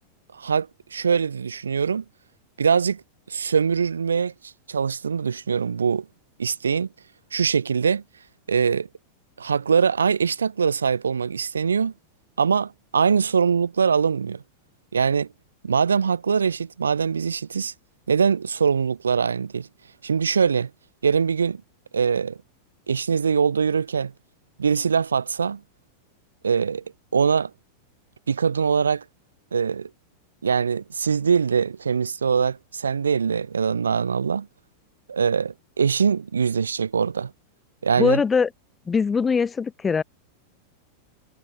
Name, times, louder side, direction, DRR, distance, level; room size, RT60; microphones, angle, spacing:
voice 1, 0.3-2.0 2.6-3.0 3.3-6.1 6.4-6.9 7.3-8.0 8.5-8.9 9.4-11.9 12.4-14.4 14.9-15.3 15.6-17.7 18.1-19.7 20.0-20.7 21.0-21.6 21.9-22.4 22.9-24.1 24.6-25.6 26.4-26.8 27.1-27.5 28.3-29.0 29.5-29.9 30.4-34.5 35.1-37.3 37.8-38.2, right 6 dB, 70° right, 1.0 m, -22 dB
voice 2, 38.0-38.5 38.9-40.0, left 5 dB, 15° left, 0.4 m, -21 dB
figure-of-eight pair, 90°, 0 cm